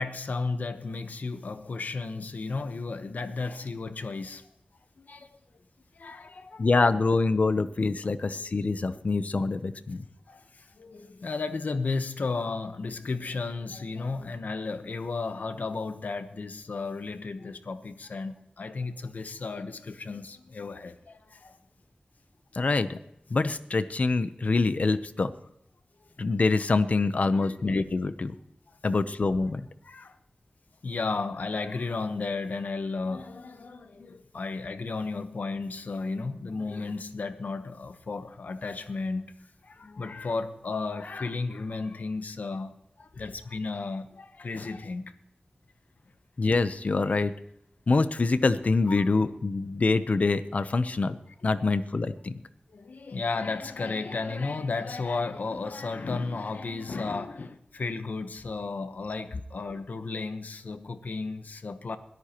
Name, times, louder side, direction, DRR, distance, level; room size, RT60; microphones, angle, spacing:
voice 1, 0.0-4.5 5.0-5.4 6.0-6.7 8.0-8.1 10.3-21.6 27.2-27.6 28.7-28.8 29.8-30.2 30.8-45.1 48.9-49.0 52.7-62.0, left 3 dB, 80° left, 1.0 m, -34 dB
voice 2, 6.6-10.0 22.5-23.0 23.3-25.3 26.2-28.4 28.8-29.7 46.4-47.3 47.9-51.2 51.4-52.4, left 3 dB, 60° left, 0.8 m, -25 dB
21.0 x 13.5 x 3.0 m
wide cardioid pair, 90°, 3 cm